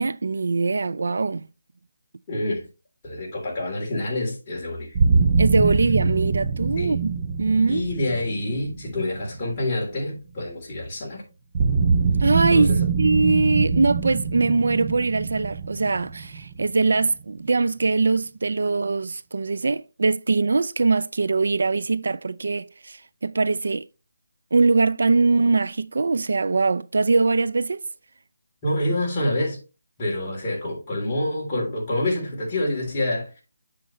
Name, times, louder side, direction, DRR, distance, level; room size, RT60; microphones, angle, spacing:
voice 1, 0.0-1.5 5.4-7.9 12.2-23.9 24.5-27.8, right 3 dB, 65° right, 0.4 m, -22 dB
voice 2, 2.3-2.7 3.0-5.0 6.8-6.9 7.7-11.2 12.5-12.7 28.6-29.6 30.0-33.4, left 1 dB, 20° left, 3.2 m, -27 dB
sound 1, 4.9-9.9 11.5-17.2, right 5 dB, 25° right, 0.6 m, -24 dB
7.6 x 6.6 x 3.1 m
hypercardioid pair, 170°, 0 cm